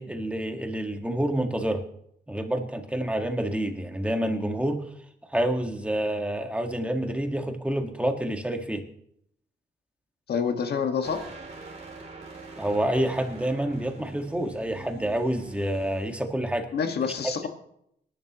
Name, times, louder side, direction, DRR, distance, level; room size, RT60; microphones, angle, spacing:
voice 1, 0.0-1.8 2.3-4.8 5.3-8.8 12.6-16.7, right 1 dB, 5° right, 4 dB, 1.7 m, -28 dB
voice 2, 10.3-11.2 16.7-17.5, left 6 dB, 70° left, 5 dB, 1.8 m, -27 dB
sound 1, 11.0-16.1, right 3 dB, 40° right, 3.2 m, -44 dB
25.5 x 11.5 x 3.0 m, 0.72 s
cardioid pair, 125°, 18 cm